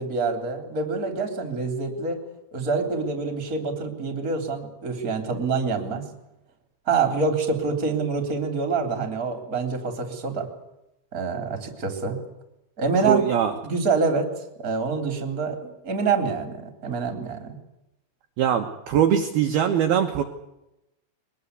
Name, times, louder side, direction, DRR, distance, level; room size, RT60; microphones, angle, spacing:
voice 1, 0.0-2.2 2.5-6.0 6.9-10.5 11.1-12.2 12.8-13.2 13.6-14.3 14.6-17.6, right 4 dB, 20° right, 6 dB, 3.1 m, -26 dB
voice 2, 13.0-13.5 18.4-20.2, right 9 dB, 65° right, 4 dB, 2.5 m, -22 dB
23.0 x 20.5 x 8.3 m, 0.90 s
omnidirectional pair, 5.9 m